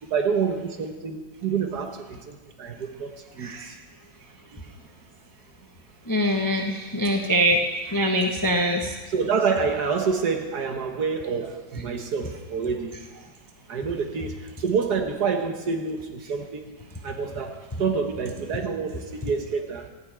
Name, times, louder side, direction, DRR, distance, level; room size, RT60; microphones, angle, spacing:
voice 1, 0.0-3.8 4.5-4.6 9.1-13.2 13.7-16.6 17.0-19.9, right 5 dB, 65° right, 5 dB, 1.5 m, -28 dB
voice 2, 6.1-7.6 7.9-8.8, equal, 20° left, 2 dB, 0.5 m, -23 dB
14.5 x 6.0 x 8.8 m, 1.3 s
omnidirectional pair, 2.0 m